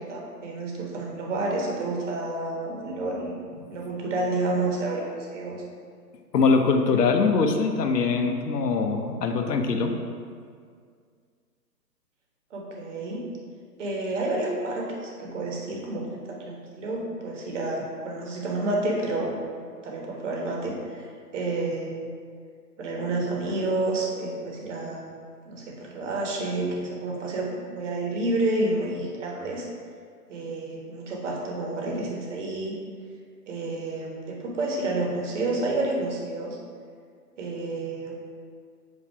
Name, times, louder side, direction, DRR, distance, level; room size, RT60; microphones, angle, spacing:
voice 1, 0.0-3.4 3.7-5.6 12.5-13.2 13.8-19.4 19.8-21.1 21.3-22.0 22.8-25.1 25.4-29.7 30.3-32.7 33.5-36.6 37.4-38.1, right 2 dB, 45° right, -1 dB, 1.3 m, -29 dB
voice 2, 6.3-9.9, left 4 dB, 75° left, 5 dB, 0.8 m, -22 dB
8.0 x 2.8 x 4.6 m, 2.1 s
hypercardioid pair, 150°, 49 cm